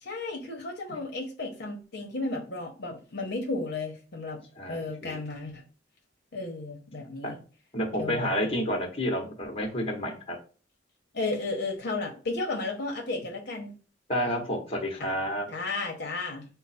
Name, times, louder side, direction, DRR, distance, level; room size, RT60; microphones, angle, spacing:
voice 1, 0.0-4.4 4.7-5.6 6.3-7.4 7.9-8.5 11.1-13.7 15.0-15.1 15.5-16.5, left 3 dB, 60° left, 0 dB, 0.8 m, -33 dB
voice 2, 4.6-5.2 7.2-7.3 7.7-10.4 14.1-15.5, equal, 30° left, 2 dB, 1.0 m, -30 dB
5.3 x 2.0 x 4.1 m, 0.37 s
head